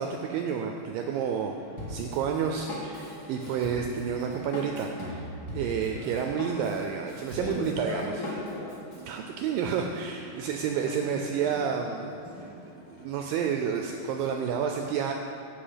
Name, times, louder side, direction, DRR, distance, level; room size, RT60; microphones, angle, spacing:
voice 1, 0.0-1.6 1.9-5.3 5.5-8.1 9.1-12.1 13.0-15.1, right 7 dB, 85° right, 3 dB, 2.0 m, -30 dB
sound 1, 1.0-14.5, right 1 dB, 60° left, 3.6 m, -51 dB
Drum kit, 1.8-9.0, left 1 dB, 35° left, 1.8 m, -39 dB
voice 2, 5.8-6.2 7.4-8.8 10.6-12.0 12.2-12.6, left 2 dB, 75° left, -6 dB, 0.8 m, -39 dB
15.5 x 5.6 x 5.1 m, 2.6 s
omnidirectional pair, 4.5 m